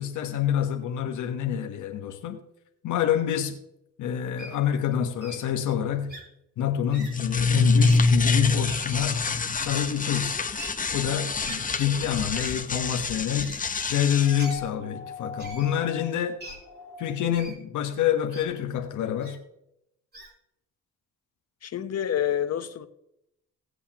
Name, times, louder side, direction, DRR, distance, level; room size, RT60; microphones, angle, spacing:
voice 1, 0.0-2.4 2.8-3.6 4.0-6.2 6.6-9.2 9.5-10.4 10.9-13.6 13.9-16.4 17.0-19.4, left 9 dB, 80° left, 1.2 m, -27 dB
Wild animals, 4.4-4.6 5.2-5.4 6.1-6.2 6.9-7.1 7.8-8.0 8.6-9.0 9.7-9.8 10.6-10.7 11.4-11.6 12.3-12.6 13.4-13.6 14.4-14.6 15.4-15.7 16.4-16.6 17.3-17.6 18.3-18.4 19.2-19.4 20.1-20.3, right 2 dB, 35° right, 3.8 m, -42 dB
sound 1, 6.9-14.4, left 3 dB, 25° left, 1.0 m, -26 dB
sound 2, 14.2-17.4 18.8-18.9, left 4 dB, 10° left, 3.3 m, -41 dB
voice 2, 21.6-22.9, left 10 dB, 55° left, 1.1 m, -28 dB
17.5 x 8.2 x 3.0 m
cardioid pair, 90°, 30 cm